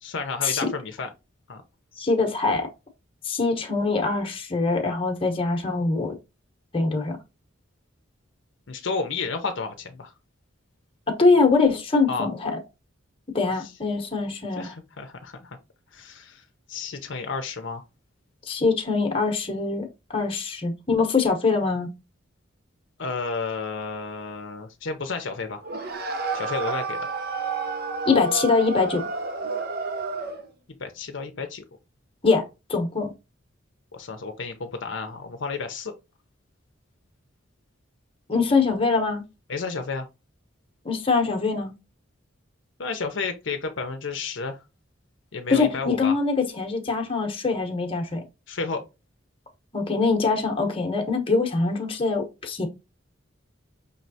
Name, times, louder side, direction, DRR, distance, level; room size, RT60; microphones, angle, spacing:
voice 1, 0.0-1.1 1.5-1.6 8.7-10.1 12.1-12.3 14.6-15.6 15.9-17.8 23.0-25.6 26.3-27.0 30.8-31.6 33.9-35.9 39.5-40.1 42.8-44.6 45.3-46.1 48.5-48.8, left 4 dB, 65° left, 0.6 m, -31 dB
voice 2, 2.0-2.7 3.2-6.1 6.7-7.2 11.1-12.6 13.3-14.7 18.5-21.9 28.1-29.1 32.2-33.1 38.3-39.2 40.8-41.7 45.5-48.2 49.7-52.7, left 4 dB, 25° left, 0.9 m, -23 dB
sound 1, 25.6-30.5, right 3 dB, 50° right, 0.7 m, -30 dB
5.3 x 3.2 x 2.7 m
head